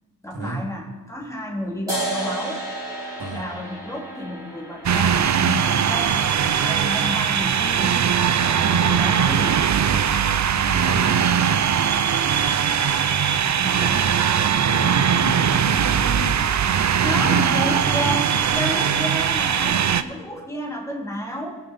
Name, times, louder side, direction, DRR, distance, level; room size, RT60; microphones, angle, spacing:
voice 1, 0.2-2.6 3.3-8.0 8.5-9.7 13.6-14.1 17.0-21.6, equal, 5° left, -1 dB, 2.4 m, -31 dB
sound 1, 1.9-8.9, right 1 dB, 10° right, 3.7 m, -34 dB
sound 2, 4.8-20.0, right 8 dB, 40° right, 0.5 m, -20 dB
voice 2, 10.6-11.0 14.6-16.5 17.1-18.2, right 2 dB, 60° right, 0 dB, 2.5 m, -30 dB
18.5 x 6.5 x 4.2 m, 1.2 s
cardioid pair, 70°, 42 cm